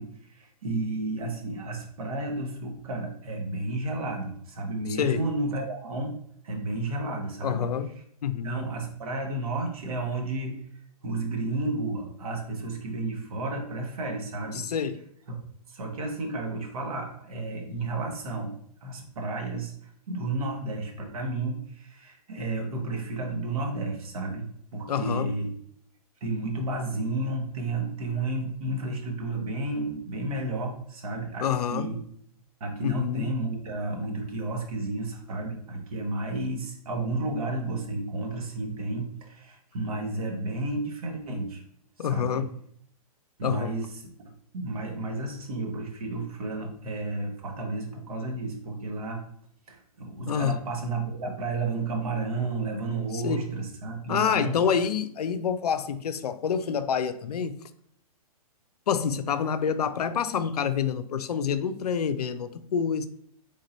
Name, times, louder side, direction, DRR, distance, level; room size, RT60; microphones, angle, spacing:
voice 1, 0.0-6.2 6.4-7.7 8.4-10.6 11.0-14.6 15.7-18.5 18.8-25.5 26.2-32.0 32.6-41.6 42.0-42.4 43.4-44.0 44.5-49.2 49.7-54.5, right 2 dB, 65° right, 2 dB, 1.3 m, -32 dB
voice 2, 7.4-7.9 8.2-8.6 14.5-15.0 24.9-25.3 31.4-31.9 32.8-33.3 42.0-42.5 43.4-43.7 50.2-50.6 53.1-53.5 54.1-57.6 58.9-63.1, left 7 dB, 85° left, 12 dB, 0.4 m, -27 dB
3.7 x 2.6 x 4.1 m, 0.66 s
hypercardioid pair, 135°, 20 cm